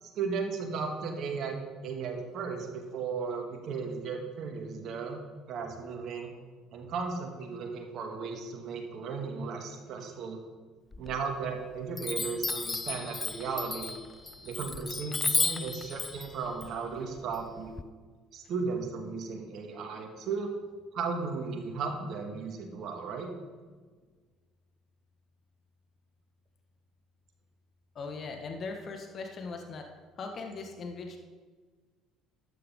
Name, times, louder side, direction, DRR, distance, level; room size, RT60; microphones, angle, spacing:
voice 1, 0.0-5.2 5.5-6.3 6.7-10.4 11.0-13.9 14.4-17.7 18.3-20.5 20.9-23.3, right 5 dB, 60° right, 3 dB, 2.1 m, -35 dB
Chime, 10.9-11.6 12.0-17.8, left 3 dB, 20° left, 0.5 m, -34 dB
voice 2, 27.9-29.9 30.2-31.2, left 4 dB, 45° left, 3 dB, 1.6 m, -39 dB
12.5 x 9.7 x 3.8 m, 1.5 s
hypercardioid pair, 60°, 0 cm